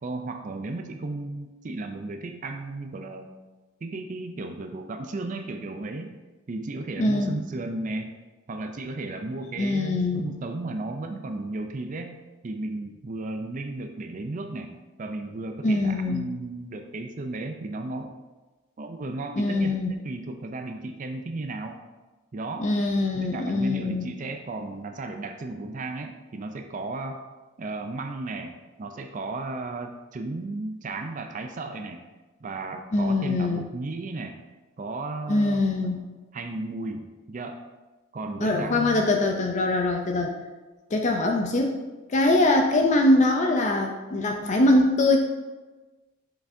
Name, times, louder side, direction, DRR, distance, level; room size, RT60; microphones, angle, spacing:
voice 1, 0.0-3.3 3.8-6.1 6.5-8.1 8.5-12.2 12.4-14.7 15.0-18.2 18.8-21.8 22.3-22.7 23.1-27.2 27.6-28.5 28.8-32.0 32.4-34.4 34.8-35.9 36.3-37.6 38.1-39.0, right 2 dB, 35° right, 6 dB, 0.4 m, -34 dB
voice 2, 7.0-7.3 9.6-10.2 15.6-16.3 19.4-19.9 22.6-24.0 32.9-33.6 35.3-36.0 38.4-40.4 40.9-41.8 42.1-45.2, left 2 dB, 35° left, 3 dB, 0.4 m, -23 dB
6.9 x 5.7 x 2.6 m, 1.2 s
head